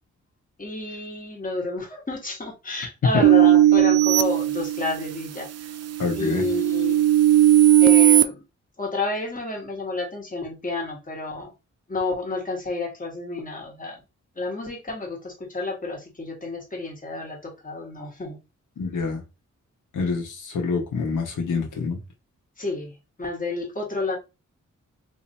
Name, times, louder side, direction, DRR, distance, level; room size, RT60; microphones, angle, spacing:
voice 1, 0.6-5.7 6.2-7.0 7.8-8.4 8.8-11.5 11.9-14.0 14.3-18.4 22.6-22.9 23.2-24.2, left 2 dB, 25° left, 1.4 m, -30 dB
sound 1, 3.2-5.2 5.7-8.2, right 13 dB, 60° right, 0.4 m, -17 dB
voice 2, 6.0-6.5 18.8-19.2 19.9-22.0, left 4 dB, 90° left, 1.0 m, -26 dB
2.8 x 2.6 x 4.0 m
wide cardioid pair, 95°, 30 cm